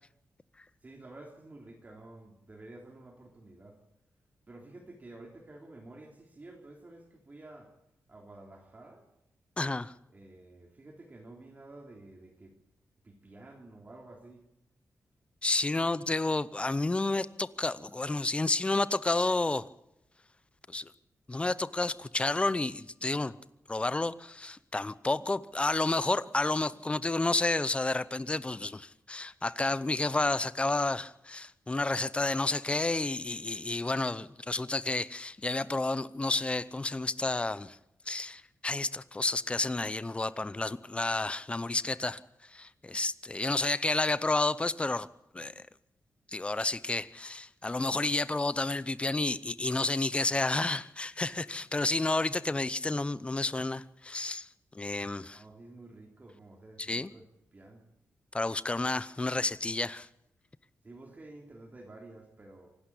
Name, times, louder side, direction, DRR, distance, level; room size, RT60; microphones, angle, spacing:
voice 1, 0.8-3.8 4.5-7.8 8.1-9.1 10.1-12.6 13.0-14.5 55.3-57.3 57.5-57.8 60.8-62.8, right 2 dB, 30° right, 3.1 m, -51 dB
voice 2, 9.6-9.9 15.4-19.7 20.7-20.9 21.3-23.3 23.7-37.8 38.1-45.1 45.3-45.6 46.3-54.5 54.7-55.4 56.8-57.1 58.3-60.1, left 2 dB, 20° left, 0.7 m, -30 dB
26.0 x 12.0 x 8.4 m
wide cardioid pair, 110°, 6 cm